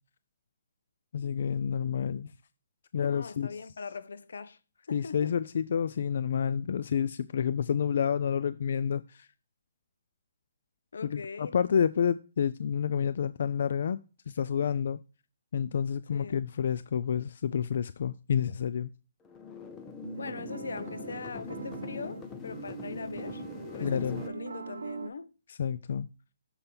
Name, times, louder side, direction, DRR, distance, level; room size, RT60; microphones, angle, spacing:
voice 1, 1.1-2.3 2.9-3.5 4.9-9.3 11.0-14.0 14.3-15.0 15.5-18.9 23.8-24.3 25.5-26.1, left 8 dB, 50° left, 0.3 m, -29 dB
voice 2, 3.1-4.6 4.9-5.3 10.9-11.6 16.1-16.4 20.2-23.4 23.7-25.3, left 5 dB, 80° left, 0.8 m, -41 dB
sound 1, 19.2-24.3, left 5 dB, 10° left, 0.7 m, -43 dB
sound 2, 20.0-25.1, right 5 dB, 85° right, 0.7 m, -41 dB
6.8 x 5.3 x 4.3 m
hypercardioid pair, 170°, 0 cm